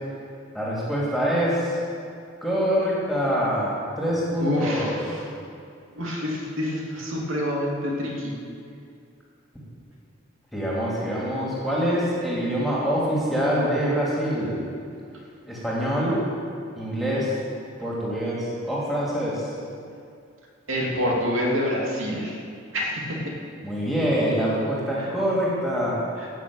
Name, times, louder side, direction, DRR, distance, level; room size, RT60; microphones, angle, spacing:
voice 1, 0.5-1.8 2.4-5.0 10.5-14.6 15.5-16.2 16.8-17.3 17.8-19.5 23.6-26.0, equal, ahead, -6 dB, 2.8 m, -25 dB
voice 2, 4.4-5.3 5.9-8.3 20.7-22.4 22.7-23.3 25.0-25.1 26.2-26.3, left 1 dB, 90° right, -2 dB, 2.8 m, -27 dB
15.0 x 6.3 x 9.0 m, 2.4 s
head